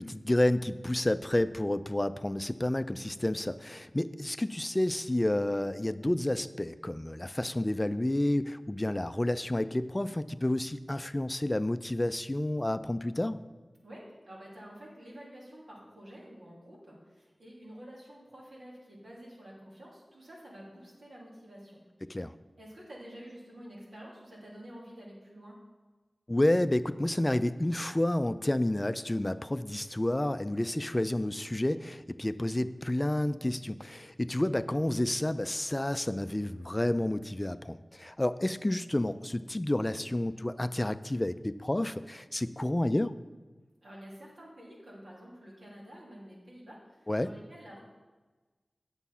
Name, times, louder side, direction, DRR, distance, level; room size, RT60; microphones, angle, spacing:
voice 1, 0.0-13.4 22.1-22.3 26.3-43.2 47.1-47.3, left 1 dB, 25° left, 12 dB, 0.4 m, -30 dB
voice 2, 13.8-22.1 22.6-25.6 43.8-47.8, equal, 90° right, -5 dB, 3.0 m, -49 dB
9.5 x 7.1 x 5.6 m, 1.3 s
wide cardioid pair, 75°, 0 cm